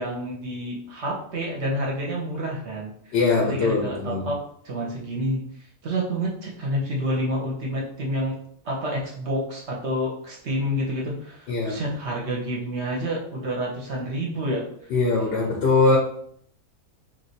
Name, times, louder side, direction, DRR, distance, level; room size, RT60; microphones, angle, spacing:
voice 1, 0.0-2.9 3.4-5.4 5.8-8.3 8.6-14.7, equal, 55° right, -2 dB, 0.9 m, -28 dB
voice 2, 3.1-4.3 11.5-11.8 14.9-16.0, left 3 dB, 60° left, -1 dB, 0.6 m, -21 dB
3.2 x 2.7 x 2.7 m, 0.65 s
omnidirectional pair, 1.5 m